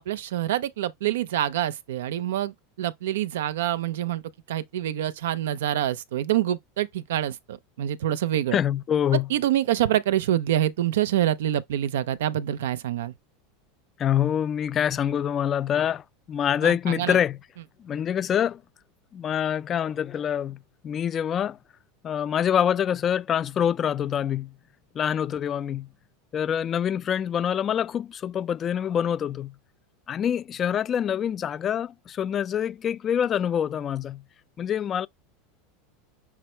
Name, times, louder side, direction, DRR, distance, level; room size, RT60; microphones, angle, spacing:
voice 1, 0.0-4.2 4.5-8.6 9.3-13.1 16.6-17.2, right 12 dB, 85° right, 0.5 m, -26 dB
voice 2, 8.5-9.3 14.0-17.4 17.8-18.6 19.1-20.6 20.8-21.6 22.0-24.5 24.9-25.9 26.3-29.5 30.1-34.2 34.6-35.1, left 9 dB, 35° left, 0.3 m, -25 dB
5.9 x 2.0 x 4.3 m
supercardioid pair, 115°, 0 cm